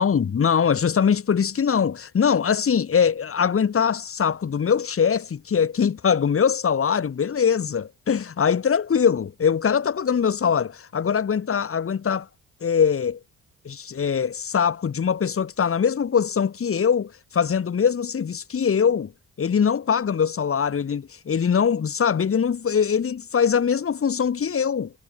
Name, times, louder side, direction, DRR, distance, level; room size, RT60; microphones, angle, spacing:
voice 1, 0.0-12.3 12.6-13.2 13.6-19.1 19.4-24.9, left 7 dB, 45° left, 6.5 m, -22 dB
cardioid pair, 90°, 30 cm